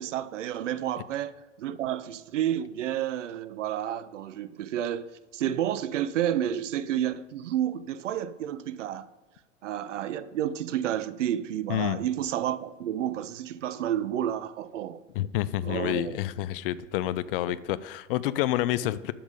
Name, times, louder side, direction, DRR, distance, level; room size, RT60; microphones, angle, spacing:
voice 1, 0.0-1.3 1.6-5.1 5.3-9.1 9.6-15.0 15.6-16.2 17.5-17.6, right 11 dB, 70° right, 0.6 m, -30 dB
voice 2, 11.7-12.0 15.1-19.1, left 14 dB, 50° left, 0.4 m, -28 dB
7.2 x 7.1 x 5.2 m
figure-of-eight pair, 85°, 38 cm